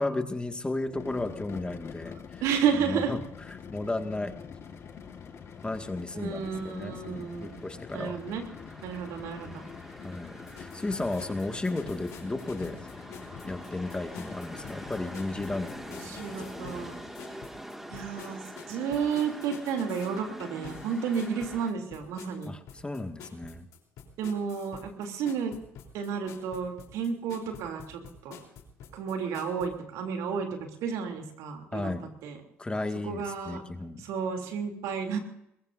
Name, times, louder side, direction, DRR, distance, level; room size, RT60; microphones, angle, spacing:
voice 1, 0.0-2.4 2.8-4.3 5.6-8.2 8.9-9.0 10.0-12.9 13.5-15.8 16.1-16.2 22.5-23.7 31.7-32.1 32.6-34.1, left 2 dB, 15° left, 6 dB, 2.0 m, -34 dB
sound 1, 0.8-17.2, left 7 dB, 50° left, 1.8 m, -45 dB
voice 2, 2.4-3.2 6.1-7.6 7.9-8.4 8.8-9.7 16.1-16.9 17.9-18.4 18.7-22.5 24.2-25.5 25.9-28.4 28.9-30.5 30.8-31.9 32.2-32.4 33.0-33.6 34.0-35.2, right 6 dB, 75° right, 3 dB, 3.2 m, -31 dB
sound 2, 4.6-21.7, equal, 5° right, 2.2 m, -46 dB
sound 3, 10.5-29.7, left 7 dB, 70° left, 3.8 m, -48 dB
22.0 x 21.5 x 2.7 m, 0.79 s
hypercardioid pair, 60°, 6 cm